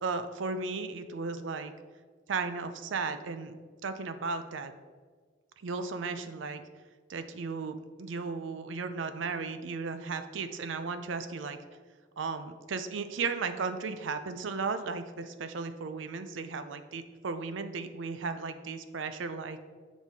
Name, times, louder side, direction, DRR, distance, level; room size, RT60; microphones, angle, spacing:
voice 1, 0.0-1.7 2.3-3.6 3.8-4.7 5.6-6.6 7.1-11.6 12.2-19.6, right 4 dB, 80° right, 10 dB, 0.5 m, -35 dB
7.0 x 4.0 x 3.6 m, 1.5 s
head